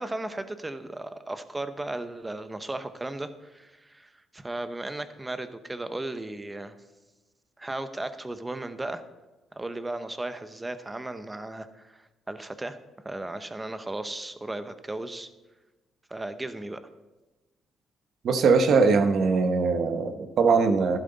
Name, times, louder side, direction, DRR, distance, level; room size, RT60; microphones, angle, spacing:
voice 1, 0.0-6.7 7.6-9.0 9.5-12.8 13.0-15.3 16.1-16.8, right 2 dB, 15° right, 11 dB, 0.9 m, -35 dB
voice 2, 18.2-21.0, right 4 dB, 65° right, 8 dB, 1.0 m, -21 dB
12.0 x 11.0 x 4.0 m, 1.1 s
cardioid pair, 90°, 0 cm